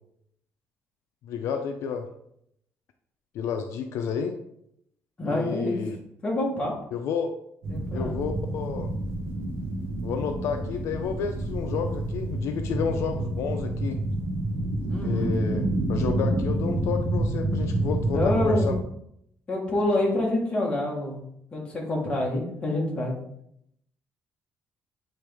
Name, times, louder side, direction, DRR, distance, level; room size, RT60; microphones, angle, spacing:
voice 1, 1.2-2.1 3.3-4.4 5.3-6.0 6.9-7.3 7.9-8.9 10.0-14.0 15.0-15.6 15.9-18.7, left 6 dB, 70° left, 6 dB, 0.5 m, -31 dB
voice 2, 5.2-5.8 6.2-6.8 7.7-8.1 14.9-15.3 18.1-18.7 19.5-21.2 21.5-23.1, left 1 dB, 20° left, -2 dB, 1.4 m, -27 dB
sound 1, 7.6-18.8, right 1 dB, 65° right, 1.7 m, -28 dB
8.4 x 3.4 x 3.5 m, 0.74 s
cardioid pair, 170°, 5 cm